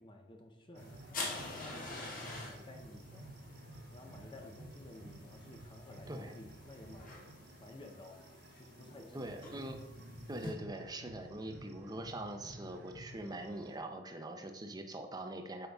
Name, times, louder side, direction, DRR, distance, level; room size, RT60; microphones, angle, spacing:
voice 1, 0.0-3.3 3.9-7.1 7.6-8.2 8.6-9.3, left 2 dB, 25° left, 3 dB, 0.6 m, -54 dB
sound 1, 0.7-13.8, right 1 dB, 55° right, 0.8 m, -53 dB
sound 2, 0.8-10.5, left 2 dB, 45° left, 1.7 m, -48 dB
voice 2, 9.1-9.8 10.3-15.7, right 1 dB, 20° right, 5 dB, 0.6 m, -43 dB
8.0 x 5.2 x 3.5 m, 1.0 s
head